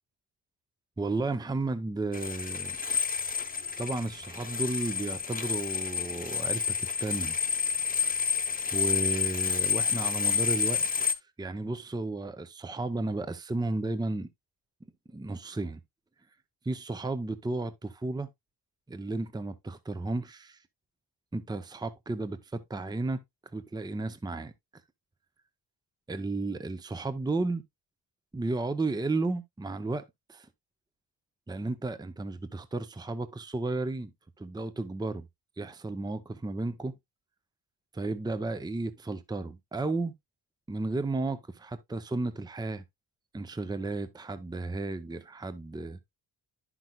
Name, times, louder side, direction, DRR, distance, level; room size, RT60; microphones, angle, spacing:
voice 1, 1.0-2.8 3.8-7.4 8.7-14.3 15.1-15.8 16.6-18.3 18.9-20.6 21.3-23.2 23.5-24.5 26.1-27.6 28.3-30.5 31.5-34.1 34.4-35.3 35.6-36.9 37.9-40.1 40.7-42.8 43.3-46.0, right 2 dB, 10° right, 0.6 m, -33 dB
sound 1, 2.1-11.1, left 6 dB, 20° left, 1.0 m, -29 dB
10.5 x 6.0 x 2.3 m
cardioid pair, 100°, 45 cm